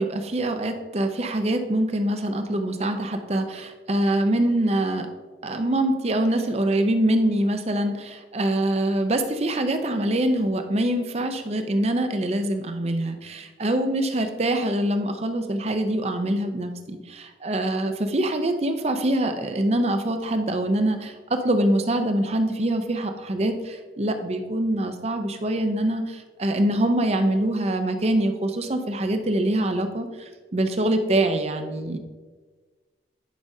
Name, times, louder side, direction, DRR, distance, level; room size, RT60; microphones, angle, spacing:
voice 1, 0.0-5.1 5.4-32.0, right 1 dB, 35° right, 7 dB, 0.6 m, -24 dB
10.5 x 5.1 x 2.7 m, 1.4 s
head